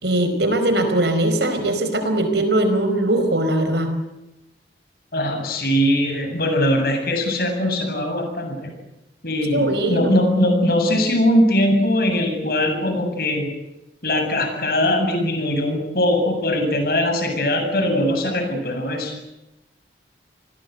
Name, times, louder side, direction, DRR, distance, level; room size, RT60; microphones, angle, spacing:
voice 1, 0.0-3.9 9.5-10.1, right 1 dB, 70° right, 8 dB, 5.0 m, -20 dB
voice 2, 5.1-8.7 9.2-13.5 14.0-19.1, left 1 dB, 55° left, 4 dB, 7.9 m, -21 dB
29.5 x 20.5 x 8.3 m, 0.93 s
head